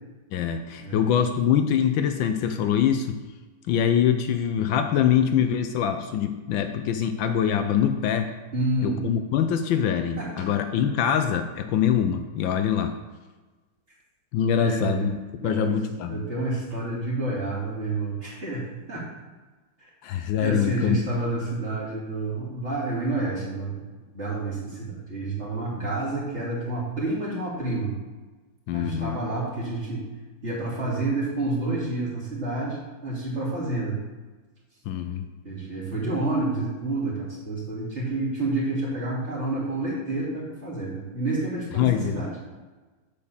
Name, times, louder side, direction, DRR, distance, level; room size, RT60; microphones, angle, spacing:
voice 1, 0.3-3.2 3.7-8.3 8.8-13.0 14.3-16.2 20.0-21.0 25.8-25.9 28.7-29.2 34.9-35.3 41.8-42.2, left 8 dB, 75° left, 7 dB, 1.3 m, -24 dB
voice 2, 8.5-9.0 10.2-10.3 14.5-15.1 15.4-15.8 16.1-19.0 20.4-23.8 24.1-27.9 28.7-30.0 30.4-34.0 35.4-42.3, right 2 dB, 35° right, -7 dB, 3.1 m, -29 dB
8.4 x 4.5 x 7.1 m, 1.3 s
omnidirectional pair, 2.2 m